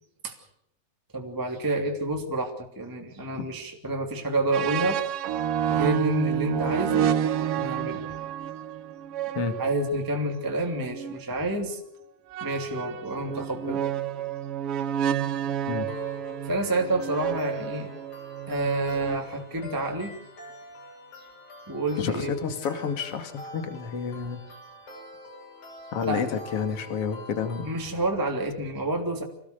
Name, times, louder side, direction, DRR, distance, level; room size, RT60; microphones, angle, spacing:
voice 1, 1.1-5.0 5.7-7.2 7.6-8.1 9.6-11.8 12.4-13.8 16.4-17.9 18.5-20.1 21.2-21.3 21.7-22.3 26.0-26.3 27.6-29.2, right 1 dB, 5° right, 2 dB, 2.5 m, -29 dB
sound 1, 4.5-11.2 12.3-19.7, right 10 dB, 80° right, 1.3 m, -30 dB
sound 2, 15.9-27.9, left 2 dB, 70° left, 8.2 m, -45 dB
voice 2, 22.0-24.4 25.9-27.7, left 6 dB, 45° left, 7 dB, 3.1 m, -30 dB
27.0 x 18.5 x 6.8 m, 0.72 s
omnidirectional pair, 4.2 m